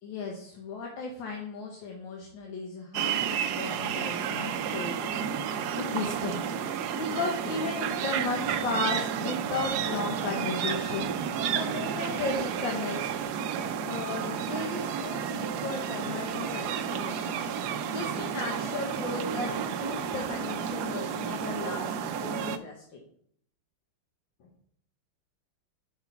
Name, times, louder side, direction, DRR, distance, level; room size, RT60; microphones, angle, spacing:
voice 1, 0.0-5.0 5.8-6.5 6.9-11.1 11.5-13.0 13.8-17.4 17.9-19.5 19.8-21.9 22.2-23.0, left 3 dB, 60° left, 0 dB, 1.7 m, -35 dB
sound 1, 2.9-22.6, right 8 dB, 80° right, 0.9 m, -31 dB
5.9 x 5.7 x 6.9 m, 0.64 s
omnidirectional pair, 2.4 m